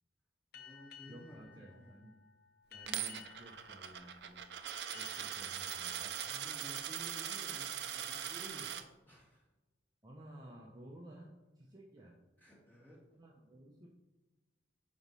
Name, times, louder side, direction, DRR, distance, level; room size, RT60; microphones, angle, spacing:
sound 1, 0.5-7.8, left 7 dB, 55° left, 0.6 m, -58 dB
voice 1, 0.5-2.0 6.2-8.7 9.1-9.4 12.4-13.0, equal, 10° left, -6 dB, 2.4 m, -54 dB
voice 2, 1.1-2.1 2.7-4.4 4.9-6.2 10.0-11.3 11.6-12.2 13.1-13.9, right 1 dB, 20° right, -2 dB, 0.7 m, -54 dB
Coin (dropping), 2.9-8.8, right 9 dB, 60° right, 0.5 m, -41 dB
9.2 x 3.1 x 5.4 m, 1.1 s
head